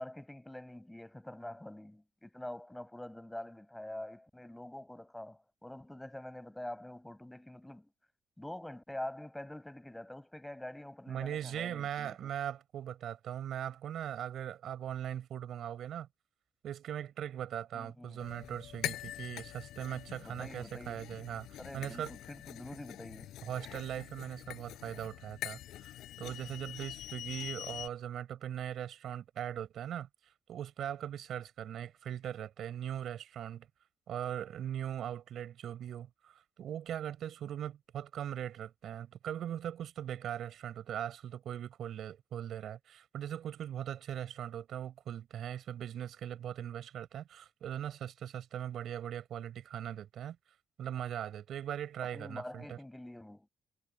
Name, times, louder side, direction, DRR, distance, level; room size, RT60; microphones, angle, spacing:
voice 1, 0.0-7.9 8.4-12.3 17.7-18.2 20.2-21.0 21.6-23.3 52.1-53.5, left 1 dB, 10° left, 7.1 m, -46 dB
voice 2, 11.1-16.1 16.6-22.2 23.5-25.9 26.2-30.1 30.5-33.7 34.1-36.3 36.6-50.4 50.8-52.8, right 10 dB, 70° right, 4.9 m, -40 dB
sound 1, 18.2-27.9, left 13 dB, 85° left, 5.4 m, -44 dB
cardioid pair, 90°, 0 cm